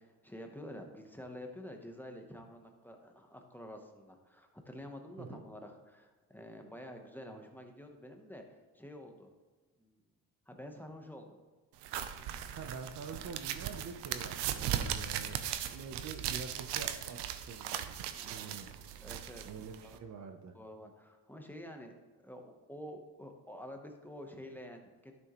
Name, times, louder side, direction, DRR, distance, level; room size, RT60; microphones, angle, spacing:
voice 1, 0.0-8.4 8.7-9.3 9.8-10.0 10.5-11.4 18.2-18.6 19.0-19.4 19.8-20.0 20.5-22.0 22.2-25.2, equal, 5° left, 3 dB, 1.0 m, -49 dB
sound 1, 11.8-20.0, right 10 dB, 85° right, 0.7 m, -38 dB
voice 2, 12.5-15.4 15.7-17.7 18.2-18.7 19.4-20.6, right 5 dB, 45° right, 7 dB, 0.8 m, -46 dB
11.5 x 6.4 x 3.1 m, 1.3 s
cardioid pair, 115°, 40 cm